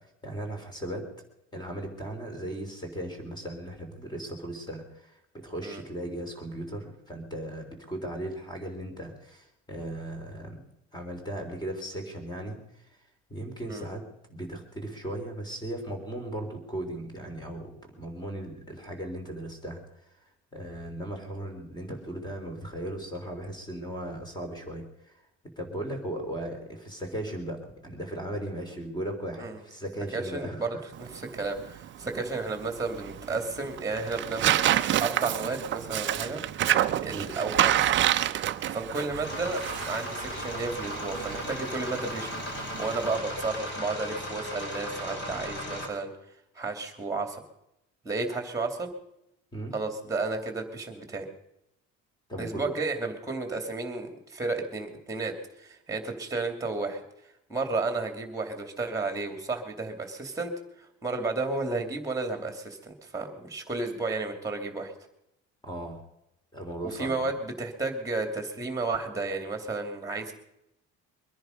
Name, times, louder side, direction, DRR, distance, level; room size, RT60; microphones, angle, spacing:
voice 1, 0.0-1.1 1.5-10.6 10.9-13.0 13.3-14.0 14.3-25.2 25.6-30.8 37.1-37.4 49.5-49.7 52.3-52.7 65.6-66.0 66.5-67.3, right 1 dB, 15° left, 4 dB, 3.6 m, -37 dB
voice 2, 30.1-34.6 35.0-36.4 37.0-37.9 38.4-42.4 42.8-46.1 46.5-47.4 48.0-48.9 49.7-51.3 52.4-57.0 57.5-64.9 66.8-70.3, right 3 dB, 10° right, 6 dB, 2.6 m, -32 dB
Tearing, 30.9-43.2, right 12 dB, 40° right, 0.7 m, -29 dB
sound 1, 39.2-45.9, left 1 dB, 35° left, 4.7 m, -36 dB
23.0 x 10.5 x 5.2 m, 0.83 s
cardioid pair, 155°, 30 cm